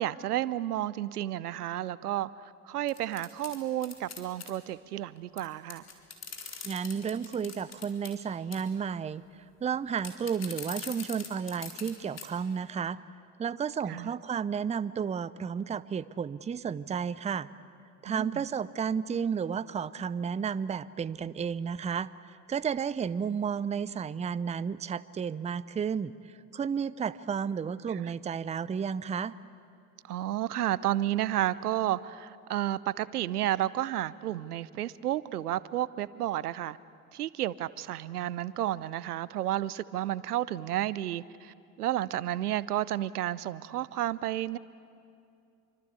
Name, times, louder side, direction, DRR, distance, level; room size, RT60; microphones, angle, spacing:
voice 1, 0.0-5.8 13.9-14.1 18.1-18.4 27.9-28.1 30.1-36.8 37.1-44.6, right 13 dB, 80° right, 0.7 m, -31 dB
sound 1, 2.9-4.5 5.4-5.5 5.7-8.2 8.5-8.8 10.0-11.9 12.2-12.3 12.7-12.8, left 6 dB, 35° left, 4.1 m, -42 dB
voice 2, 6.6-9.2 9.6-13.0 13.4-17.5 18.0-26.1 26.5-29.3, right 7 dB, 15° right, 0.6 m, -32 dB
27.5 x 24.5 x 8.4 m
figure-of-eight pair, 70°, 45 cm